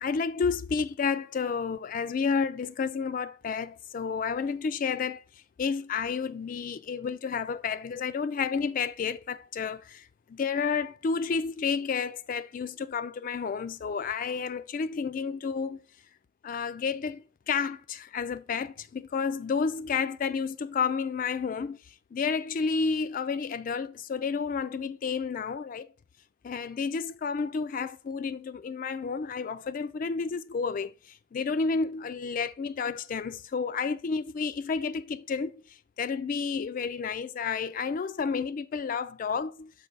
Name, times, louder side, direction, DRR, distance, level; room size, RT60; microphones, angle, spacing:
voice 1, 0.0-5.2 5.6-15.8 16.4-21.8 22.1-25.9 26.4-30.9 31.3-35.6 36.0-39.7, left 5 dB, 45° left, 0.3 m, -31 dB
6.6 x 5.2 x 3.9 m
head